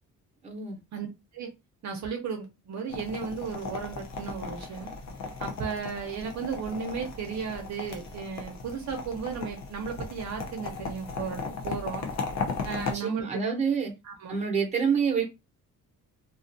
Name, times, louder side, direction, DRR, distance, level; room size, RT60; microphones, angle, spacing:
voice 1, 0.4-0.8 12.7-13.9 14.3-15.2, right 6 dB, 20° right, 0.9 m, -27 dB
voice 2, 1.8-4.9 5.4-12.1 12.6-13.3 14.0-14.3, right 6 dB, 60° right, 0.7 m, -35 dB
sound 1, 2.9-13.0, left 4 dB, 55° left, 0.7 m, -36 dB
2.5 x 2.4 x 2.6 m
cardioid pair, 135°, 32 cm